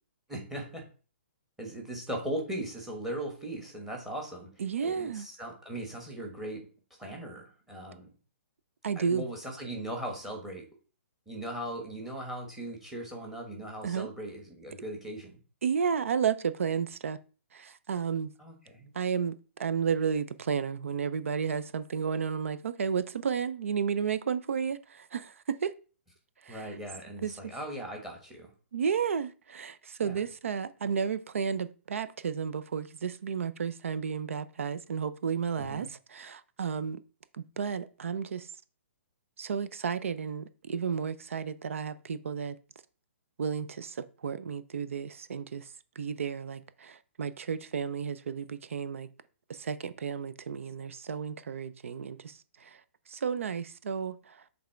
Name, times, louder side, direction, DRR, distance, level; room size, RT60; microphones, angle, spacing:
voice 1, 0.3-0.8 1.6-6.6 7.0-8.1 8.9-10.7 11.3-15.4 18.4-18.9 26.5-28.5 30.0-30.2 35.6-35.9, right 1 dB, 5° right, 1.2 m, -39 dB
voice 2, 4.6-5.3 8.8-9.2 13.8-14.1 15.6-17.2 17.5-18.3 18.9-25.7 26.5-26.6 27.2-27.6 28.7-37.0 37.3-38.5 39.4-42.5 43.4-45.7 46.0-49.1 49.5-52.3 52.7-52.8 53.1-54.3, right 6 dB, 75° right, 0.7 m, -32 dB
7.3 x 3.5 x 4.5 m
hypercardioid pair, 170°, 7 cm